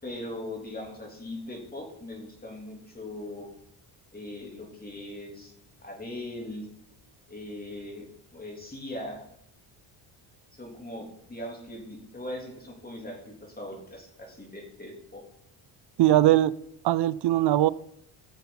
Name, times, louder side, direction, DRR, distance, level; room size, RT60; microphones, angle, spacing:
voice 1, 0.0-3.5 4.1-5.5 5.8-6.7 7.3-9.2 10.5-15.2, left 1 dB, 20° left, 0 dB, 3.4 m, -40 dB
voice 2, 16.0-16.5 16.8-17.7, right 14 dB, 55° right, 18 dB, 0.6 m, -20 dB
16.0 x 7.1 x 4.1 m, 0.74 s
cardioid pair, 90°, 48 cm